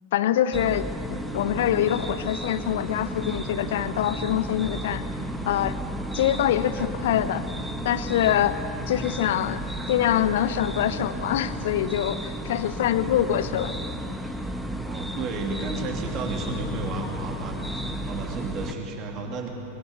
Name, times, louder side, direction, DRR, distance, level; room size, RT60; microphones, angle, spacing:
voice 1, 0.1-5.0 5.5-5.8 6.1-7.4 7.8-8.6 8.9-9.6 9.9-13.7, left 11 dB, 55° left, 13 dB, 0.9 m, -24 dB
sound 1, 0.5-18.7, right 1 dB, ahead, 1.4 m, -33 dB
voice 2, 14.8-19.5, right 3 dB, 35° right, 2 dB, 3.0 m, -33 dB
23.5 x 21.5 x 8.1 m, 2.8 s
figure-of-eight pair, 90°, 0 cm